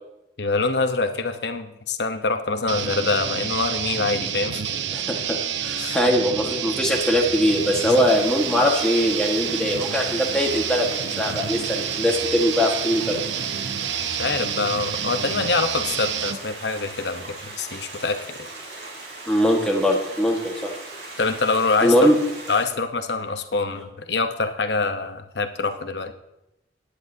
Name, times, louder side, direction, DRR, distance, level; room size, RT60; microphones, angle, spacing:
voice 1, 0.4-4.6 5.8-6.0 7.8-7.9 14.2-18.4 21.2-22.1 22.5-26.1, left 3 dB, 70° left, 8 dB, 1.0 m, -25 dB
sound 1, 2.7-16.4, right 8 dB, 85° right, 0.7 m, -28 dB
voice 2, 4.9-13.2 19.3-20.7 21.8-22.2, equal, 5° left, -1 dB, 1.5 m, -21 dB
Stream, 6.3-22.7, right 2 dB, 65° right, 4.0 m, -39 dB
17.5 x 10.5 x 2.8 m, 0.89 s
head